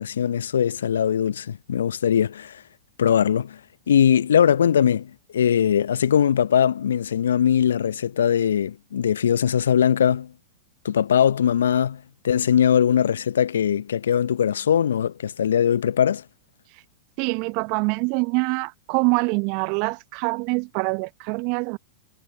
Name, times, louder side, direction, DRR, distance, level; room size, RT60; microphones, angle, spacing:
voice 1, 0.0-2.6 3.0-3.6 3.9-10.3 10.8-16.2, left 8 dB, 70° left, 0.8 m, -21 dB
voice 2, 17.2-21.8, right 33 dB, 45° right, 0.7 m, -25 dB
figure-of-eight pair, 95°, 0 cm